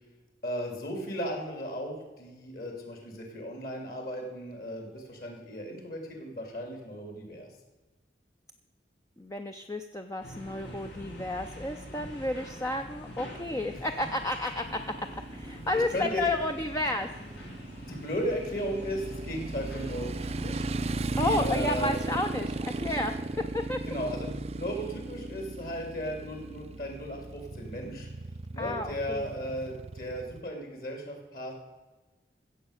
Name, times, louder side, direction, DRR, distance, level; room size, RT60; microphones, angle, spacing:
voice 1, 0.4-7.5 13.7-13.8 15.7-16.2 17.9-22.0 23.8-28.1 28.5-31.5, equal, 50° left, 2 dB, 2.9 m, -36 dB
voice 2, 9.2-17.1 21.2-23.9 28.6-29.3, left 2 dB, 15° left, 5 dB, 0.5 m, -32 dB
sound 1, 10.2-22.9, equal, 75° left, 3.2 m, -46 dB
Motorcycle, 14.6-30.4, right 2 dB, 35° right, 0.4 m, -37 dB
15.5 x 7.3 x 6.5 m, 1.2 s
head